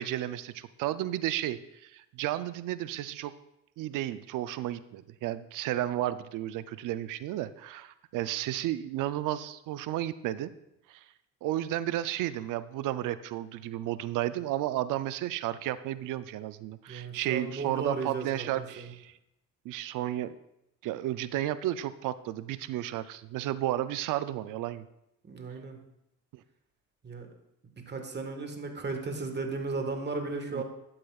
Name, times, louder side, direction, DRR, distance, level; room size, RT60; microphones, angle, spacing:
voice 1, 0.0-3.3 3.8-10.5 10.9-11.0 11.4-19.1 19.6-20.4 20.8-24.9 30.5-30.6, right 13 dB, 85° right, 14 dB, 0.5 m, -33 dB
voice 2, 16.9-18.9 25.2-25.8 27.0-27.3 27.7-30.6, right 3 dB, 35° right, 4 dB, 1.5 m, -35 dB
12.0 x 8.7 x 2.4 m, 0.84 s
cardioid pair, 85°, 31 cm